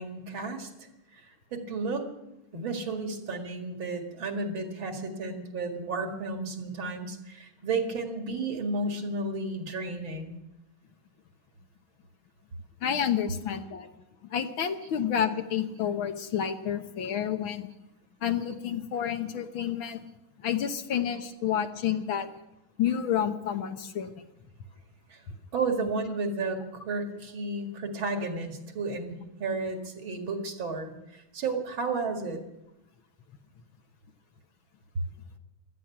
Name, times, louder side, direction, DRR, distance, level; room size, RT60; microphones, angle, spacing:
voice 1, 0.0-2.1 2.5-10.4 25.1-25.2 25.5-26.6 26.9-32.4, right 3 dB, 70° right, 4 dB, 2.8 m, -33 dB
voice 2, 12.8-13.9 14.2-17.7 18.2-20.1 20.4-22.3 22.8-24.2, left 9 dB, 75° left, 7 dB, 1.9 m, -29 dB
17.0 x 13.0 x 5.9 m, 0.91 s
omnidirectional pair, 2.3 m